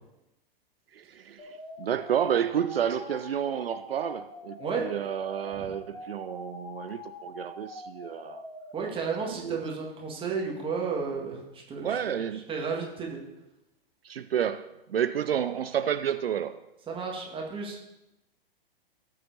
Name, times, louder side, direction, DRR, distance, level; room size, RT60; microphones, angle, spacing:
voice 1, 0.9-8.4 9.2-9.6 11.8-12.4 14.0-16.6, right 9 dB, 75° right, 11 dB, 0.5 m, -30 dB
sound 1, 1.4-8.7, left 2 dB, 50° left, 2.1 m, -44 dB
voice 2, 8.7-12.2 12.5-13.2 16.9-17.8, right 5 dB, 15° right, -1 dB, 1.8 m, -33 dB
17.0 x 7.5 x 2.8 m, 0.96 s
figure-of-eight pair, 105°, 30 cm